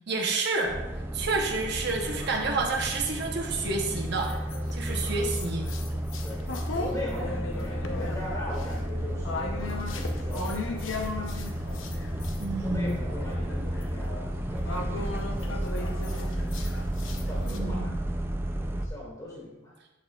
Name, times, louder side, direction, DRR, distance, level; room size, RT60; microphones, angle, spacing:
voice 1, 0.1-4.3 4.7-5.6 12.4-12.9 17.5-17.9, right 3 dB, 60° right, 1 dB, 0.8 m, -29 dB
sound 1, 0.7-18.9, right 1 dB, 10° right, 0.3 m, -32 dB
sound 2, 1.6-3.0 3.6-12.5 12.8-17.6, left 3 dB, 85° left, 0.7 m, -38 dB
voice 2, 6.7-11.1 12.6-16.3 17.3-18.0 18.6-19.7, left 1 dB, 15° left, -5 dB, 2.1 m, -40 dB
8.4 x 6.6 x 2.3 m, 1.0 s
head